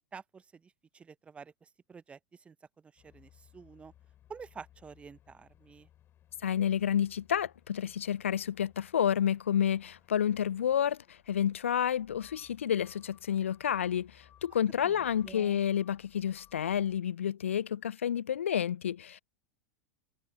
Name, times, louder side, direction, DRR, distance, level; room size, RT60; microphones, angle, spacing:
voice 1, 0.1-2.6 2.8-3.9 4.3-5.9 14.8-15.6, right 5 dB, 15° right, 0.6 m, -50 dB
sound 1, 3.0-17.0, left 11 dB, 35° left, 5.8 m, -63 dB
voice 2, 6.4-19.2, left 9 dB, 75° left, 0.5 m, -30 dB
figure-of-eight pair, 90°, 7 cm